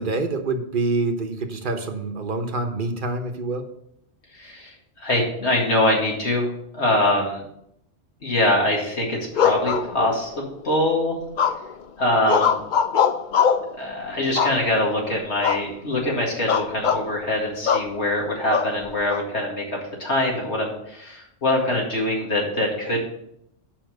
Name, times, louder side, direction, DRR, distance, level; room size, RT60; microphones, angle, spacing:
voice 1, 0.0-3.7, right 3 dB, 45° right, 5 dB, 1.2 m, -26 dB
voice 2, 4.3-6.5 6.7-7.4 8.2-11.2 12.0-12.6 13.7-23.0, left 1 dB, 70° left, -2 dB, 2.4 m, -23 dB
sound 1, 9.3-10.4 11.4-11.8 12.3-13.7 14.4-14.9 15.4-15.7 16.0-16.1 16.5-17.0 17.7-17.9 18.5-19.2, left 7 dB, 50° left, 0.6 m, -22 dB
8.9 x 5.6 x 6.5 m, 0.75 s
omnidirectional pair, 1.2 m